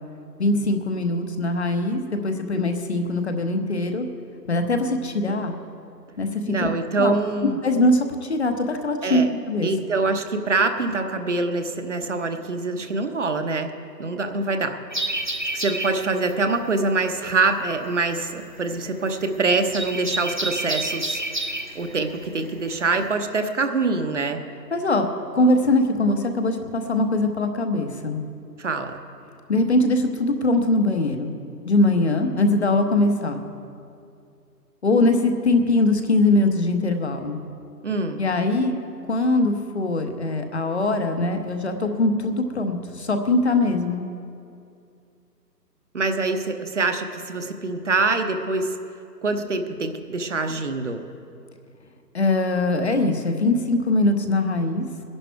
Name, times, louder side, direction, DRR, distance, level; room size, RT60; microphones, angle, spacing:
voice 1, 0.4-4.1 4.5-5.6 6.2-6.7 7.0-7.1 7.4-9.7 24.7-25.1 25.3-28.2 29.5-31.3 31.6-33.4 34.8-37.4 38.2-38.8 39.1-44.1 52.1-54.9, left 2 dB, 40° left, 6 dB, 1.0 m, -22 dB
voice 2, 6.5-7.6 9.0-9.3 9.6-13.7 14.0-14.8 15.5-21.2 21.7-24.4 28.6-29.0 37.8-38.2 45.9-48.7 49.2-51.0, right 3 dB, 45° right, 6 dB, 1.0 m, -24 dB
sound 1, 14.9-23.1, right 1 dB, 30° right, 0.6 m, -30 dB
19.0 x 11.0 x 4.6 m, 2.5 s
hypercardioid pair, 165°, 50 cm